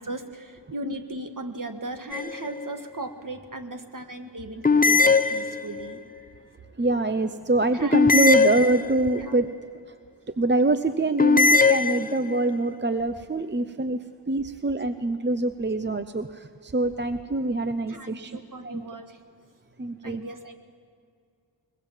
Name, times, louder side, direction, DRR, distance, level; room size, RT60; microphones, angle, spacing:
voice 1, 0.0-6.0 7.7-8.0 9.2-9.4 17.9-19.2 20.0-20.5, right 1 dB, 45° right, 6 dB, 1.8 m, -37 dB
sound 1, 2.1-2.7 4.6-5.9 7.9-9.3 11.2-12.5, left 4 dB, 20° left, 0.6 m, -20 dB
voice 2, 6.8-9.5 9.9-10.0 10.4-18.3 18.6-18.8 19.8-20.2, right 2 dB, 25° right, 10 dB, 0.7 m, -25 dB
22.0 x 21.5 x 7.4 m, 2.4 s
wide cardioid pair, 75°, 43 cm